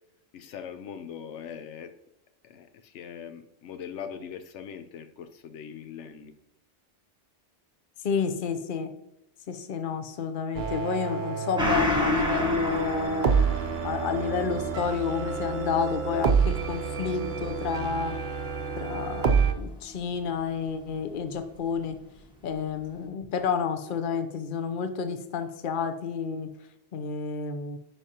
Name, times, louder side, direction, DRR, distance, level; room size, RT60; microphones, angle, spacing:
voice 1, 0.3-1.9 2.4-6.4, left 7 dB, 80° left, 9 dB, 0.9 m, -41 dB
voice 2, 8.0-8.9 9.5-13.4 13.8-18.2 18.8-22.0 22.4-26.5 26.9-27.8, left 6 dB, 50° left, 9 dB, 0.8 m, -30 dB
sound 1, 10.5-19.5, right 6 dB, 50° right, 0.8 m, -28 dB
Gong, 11.6-20.5 20.9-21.0, left 1 dB, 5° right, 1.0 m, -33 dB
10.0 x 5.0 x 2.8 m, 0.84 s
omnidirectional pair, 1.2 m